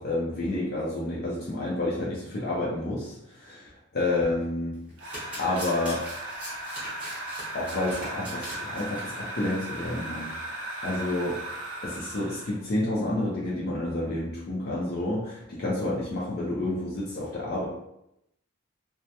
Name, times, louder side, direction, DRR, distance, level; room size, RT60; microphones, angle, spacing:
voice 1, 0.0-4.8 5.4-6.0 7.5-10.6 10.8-11.4 11.8-17.7, left 2 dB, 45° left, -5 dB, 0.4 m, -29 dB
Domestic sounds home sounds, 4.7-9.0 9.4-9.6 9.8-9.9, equal, 5° right, 0.8 m, -41 dB
sound 1, 5.0-12.6, right 1 dB, 60° right, 0.5 m, -37 dB
2.1 x 2.1 x 2.7 m, 0.82 s
head